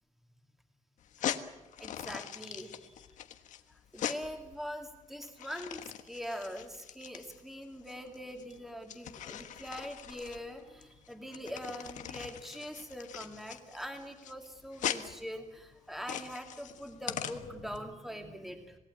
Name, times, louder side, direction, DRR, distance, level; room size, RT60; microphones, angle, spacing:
sound 1, 1.0-17.8, left 10 dB, 80° left, 1.4 m, -41 dB
voice 1, 1.8-3.1 3.9-18.8, equal, ahead, 4 dB, 2.4 m, -43 dB
27.0 x 18.0 x 8.6 m, 1.0 s
wide cardioid pair, 170°, 13 cm